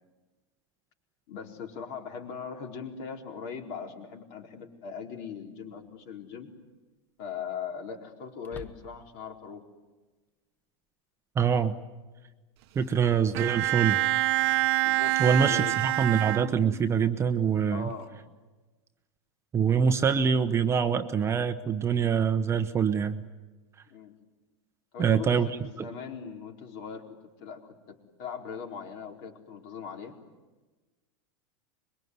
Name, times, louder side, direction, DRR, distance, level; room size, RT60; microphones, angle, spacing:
voice 1, 1.3-6.5 7.2-9.7 14.8-15.8 17.7-18.2 23.9-24.2 24.9-30.2, left 6 dB, 50° left, 3 dB, 4.5 m, -40 dB
sound 1, 3.8-3.9 5.7-6.1 6.5-6.6 8.4-9.3, left 3 dB, 10° left, 1.1 m, -48 dB
voice 2, 11.4-11.8 12.7-14.0 15.2-17.9 19.5-23.2 25.0-25.5 25.8-25.9, right 7 dB, 15° right, 8 dB, 0.9 m, -25 dB
Bowed string instrument, 13.3-17.0, right 16 dB, 60° right, 1.0 m, -26 dB
26.0 x 22.5 x 9.6 m, 1.2 s
supercardioid pair, 150°, 16 cm